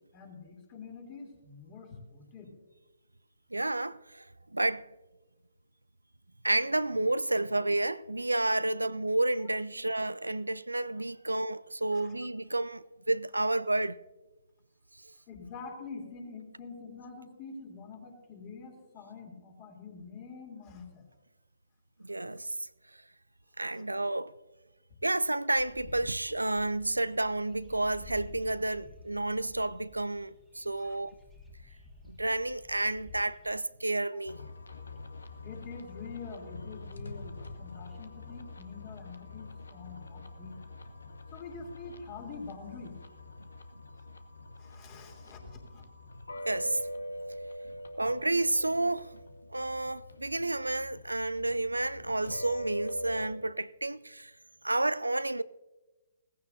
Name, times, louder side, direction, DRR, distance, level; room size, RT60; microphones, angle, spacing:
voice 1, 0.1-2.5 11.9-12.1 15.3-21.0 23.8-23.9 30.8-31.0 34.1-34.2 35.4-40.6 41.3-43.0 44.6-45.8, left 4 dB, 30° left, 3.2 m, -46 dB
voice 2, 3.5-4.3 4.5-4.9 6.4-14.0 15.0-15.1 22.0-22.6 22.9-23.0 23.6-24.3 25.0-31.2 32.1-34.4 43.4-43.5 46.5-46.9 48.0-49.2 49.5-54.3 54.6-55.4, right 2 dB, 90° right, 0.3 m, -30 dB
sound 1, 25.5-33.6, left 2 dB, ahead, 1.9 m, -52 dB
sound 2, 34.3-53.3, left 1 dB, 75° left, 1.0 m, -44 dB
17.0 x 15.0 x 2.7 m
figure-of-eight pair, 130°, 0 cm